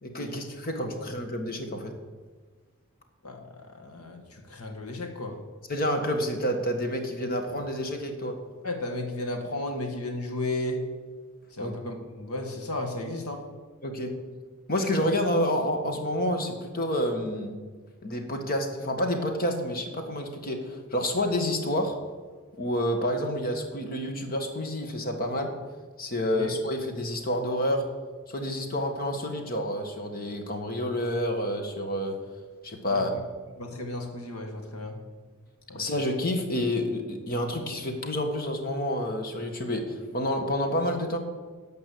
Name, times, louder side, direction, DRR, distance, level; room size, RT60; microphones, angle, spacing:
voice 1, 0.0-1.9 5.7-8.3 11.6-11.7 13.8-14.1 14.7-17.5 18.0-22.0 22.6-25.5 26.0-27.8 28.3-32.1 32.6-33.1 35.7-41.2, left 1 dB, 45° left, 5 dB, 1.6 m, -29 dB
voice 2, 3.2-5.4 8.6-10.8 11.5-13.4 26.4-26.5 32.9-33.0 33.6-35.0 35.7-35.8, left 1 dB, 90° left, 3 dB, 1.8 m, -34 dB
13.0 x 5.4 x 8.5 m, 1.4 s
head